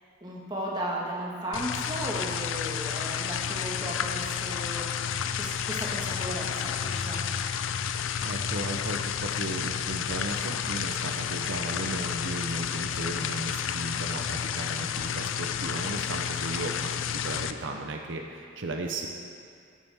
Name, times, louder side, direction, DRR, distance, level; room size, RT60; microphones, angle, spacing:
voice 1, 0.2-7.3, equal, 20° right, -3 dB, 1.5 m, -35 dB
sound 1, 1.5-17.5, left 8 dB, 85° left, 0.4 m, -31 dB
voice 2, 8.0-19.1, right 2 dB, 75° right, 2 dB, 0.7 m, -35 dB
16.0 x 7.6 x 3.5 m, 2.3 s
head